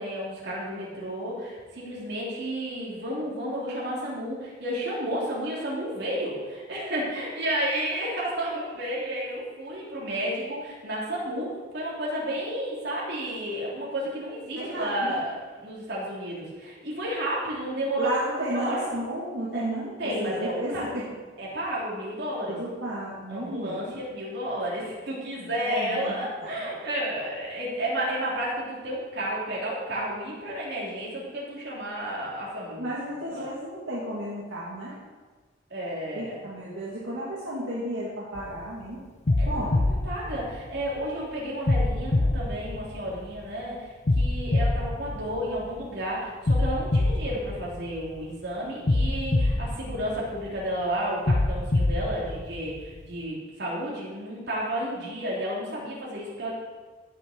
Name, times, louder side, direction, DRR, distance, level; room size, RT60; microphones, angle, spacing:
voice 1, 0.0-18.2 18.5-18.8 19.5-19.6 20.0-20.8 21.4-22.6 23.3-32.9 33.3-33.5 35.7-36.4 39.4-56.5, right 1 dB, 55° right, -5 dB, 3.6 m, -32 dB
voice 2, 14.6-15.2 18.0-21.0 22.5-24.0 25.6-26.1 32.8-35.0 36.1-39.0 39.4-39.8, right 1 dB, 75° right, -7 dB, 2.2 m, -33 dB
sound 1, 38.3-38.7 39.3-41.1 41.7-43.5 44.1-45.9 46.5-48.3 48.9-50.7 51.3-53.1, left 2 dB, 35° left, 0.5 m, -25 dB
16.5 x 6.7 x 4.6 m, 1.3 s
head